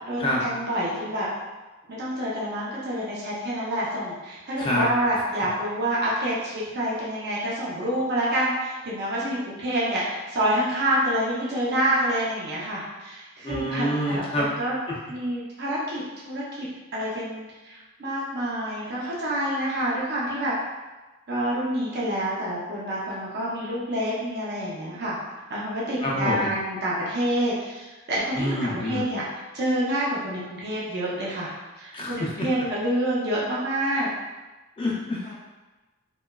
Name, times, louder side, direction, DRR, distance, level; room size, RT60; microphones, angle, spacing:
voice 1, 0.1-1.3 1.9-14.8 15.1-20.5 21.3-25.2 25.5-29.2 29.5-34.1, right 1 dB, 50° right, -7 dB, 0.6 m, -27 dB
voice 2, 4.6-4.9 13.4-14.5 26.0-26.5 28.3-29.1 31.9-32.5 34.8-35.3, left 1 dB, 25° left, -5 dB, 0.3 m, -26 dB
2.9 x 2.2 x 2.2 m, 1.2 s
head